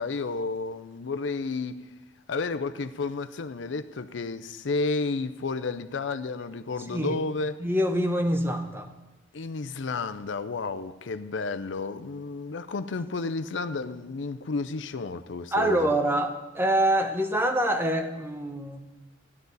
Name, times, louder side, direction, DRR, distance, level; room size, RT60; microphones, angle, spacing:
voice 1, 0.0-1.7 2.3-7.6 9.3-15.9, left 3 dB, 75° left, 0.6 m, -31 dB
voice 2, 6.9-7.2 7.6-8.9 15.5-18.9, right 1 dB, 10° right, 0.8 m, -25 dB
14.0 x 9.6 x 4.0 m
head